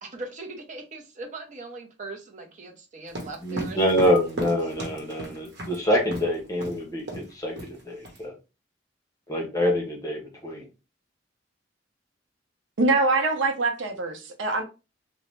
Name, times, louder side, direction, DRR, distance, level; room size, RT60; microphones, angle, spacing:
voice 1, 0.0-3.8, right 2 dB, 40° right, 0.6 m, -40 dB
sound 1, 3.1-5.8 6.1-6.3 6.6-6.8 7.1-7.3 7.6-8.2, right 1 dB, 60° right, 1.0 m, -35 dB
voice 2, 3.4-8.3 9.3-10.7, equal, 20° left, 0.9 m, -26 dB
voice 3, 12.8-14.6, right 3 dB, 85° right, 0.6 m, -23 dB
2.8 x 2.1 x 3.2 m
head